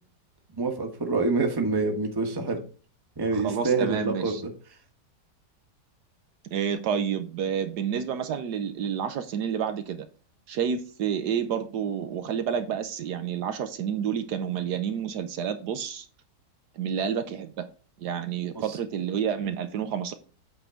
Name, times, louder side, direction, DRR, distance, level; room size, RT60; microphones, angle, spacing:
voice 1, 0.6-2.6 3.2-4.5 18.5-18.8, right 3 dB, 15° right, 4 dB, 1.1 m, -26 dB
voice 2, 3.3-4.4 6.5-10.1 10.5-16.1 16.8-17.6 18.0-20.1, right 8 dB, 70° right, 9 dB, 1.2 m, -29 dB
8.1 x 3.8 x 5.6 m, 0.37 s
omnidirectional pair, 1.9 m